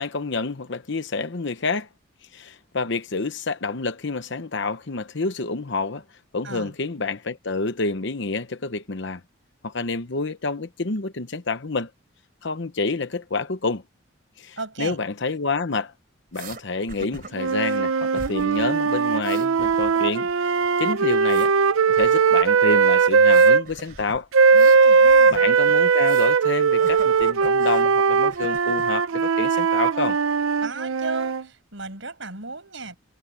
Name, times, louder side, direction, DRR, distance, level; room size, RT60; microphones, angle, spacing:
voice 1, 0.0-1.9 2.2-6.0 6.3-9.2 9.6-11.9 12.4-13.8 14.4-15.9 16.3-21.5 21.9-24.3 25.3-30.2, left 3 dB, 60° left, 0.9 m, -28 dB
voice 2, 6.4-6.8 14.6-15.0 24.5-25.4 30.6-33.0, right 3 dB, 65° right, 7.0 m, -35 dB
sound 1, 16.3-16.6 16.9-17.8 18.1-18.7 18.9-20.3 20.6-21.5 22.0-22.6 23.2-26.4 26.8-27.9 28.3-28.9, right 3 dB, 45° right, 3.6 m, -42 dB
sound 2, 17.4-23.6 24.3-31.4, right 5 dB, 90° right, 0.6 m, -19 dB
head